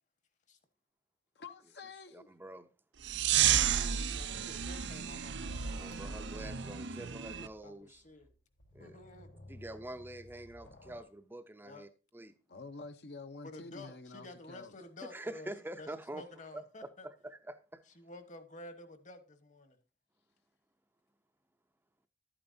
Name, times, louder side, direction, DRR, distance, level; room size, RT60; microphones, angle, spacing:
voice 1, 1.4-2.3 12.5-14.7, left 3 dB, 60° left, 0.7 m, -48 dB
voice 2, 2.1-2.7 5.8-8.0 8.7-9.0 9.5-12.3 15.1-16.2 16.8-17.8, right 1 dB, 10° right, 0.5 m, -46 dB
sound 1, 3.0-7.5, right 9 dB, 80° right, 0.6 m, -32 dB
voice 3, 4.0-5.6 7.6-8.3 8.8-9.3 11.6-11.9 13.4-15.5 15.8-17.1 18.0-19.8, left 2 dB, 45° left, 1.2 m, -51 dB
sound 2, 5.4-11.0, left 1 dB, 90° left, 1.5 m, -56 dB
12.0 x 8.7 x 2.6 m
head